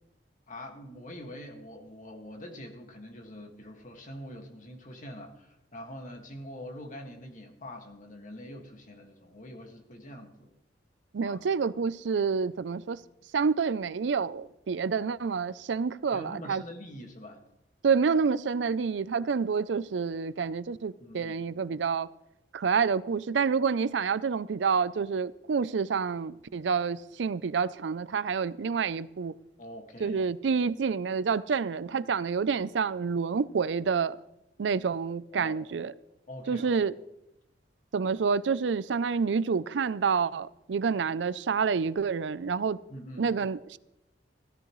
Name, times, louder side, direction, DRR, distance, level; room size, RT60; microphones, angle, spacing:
voice 1, 0.5-10.5 11.2-11.4 16.1-17.4 21.0-21.4 29.6-30.2 35.3-35.5 36.3-36.7 42.9-43.3, left 1 dB, 45° left, 1.9 m, -44 dB
voice 2, 11.1-13.0 13.3-16.6 17.8-22.1 22.5-29.3 30.0-34.2 34.6-35.9 36.5-37.0 37.9-42.8 43.2-43.8, right 5 dB, 85° right, 0.5 m, -28 dB
16.0 x 14.0 x 3.1 m
head